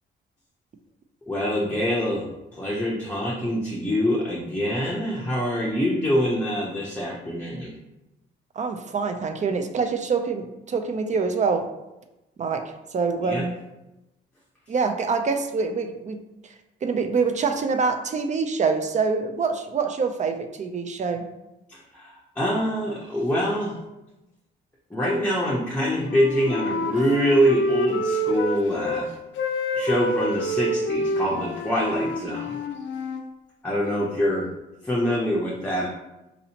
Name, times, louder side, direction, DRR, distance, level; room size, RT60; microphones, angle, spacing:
voice 1, 1.3-2.3 2.5-7.7 13.2-13.4 21.7-23.8 24.9-29.1 29.7-32.6 33.6-34.5 34.8-35.9, equal, 10° left, -4 dB, 0.6 m, -25 dB
voice 2, 8.6-11.7 12.4-13.5 14.7-16.2 16.8-21.3, right 5 dB, 35° right, 6 dB, 0.5 m, -25 dB
Wind instrument woodwind instrument, 25.7-29.0 29.3-33.2, equal, 70° left, 0.5 m, -28 dB
4.1 x 2.7 x 2.8 m, 0.96 s
cardioid pair, 90°, 20 cm